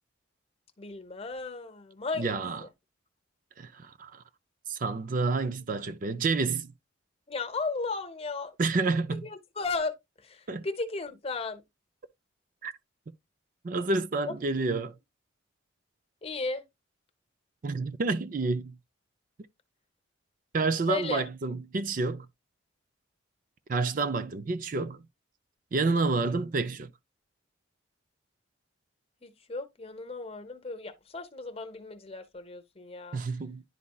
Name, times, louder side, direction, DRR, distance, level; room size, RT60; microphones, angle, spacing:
voice 1, 0.8-2.4 7.3-8.5 9.1-9.9 10.2-11.6 16.2-16.6 20.9-21.2 29.2-33.2, left 3 dB, 30° left, 0.8 m, -35 dB
voice 2, 2.2-2.6 3.6-4.2 4.7-6.7 8.6-9.3 10.5-10.7 12.6-12.7 13.6-14.9 17.6-18.7 20.5-22.3 23.7-25.0 25.7-26.9 33.1-33.6, right 3 dB, 45° right, 0.4 m, -29 dB
10.5 x 4.2 x 2.3 m
head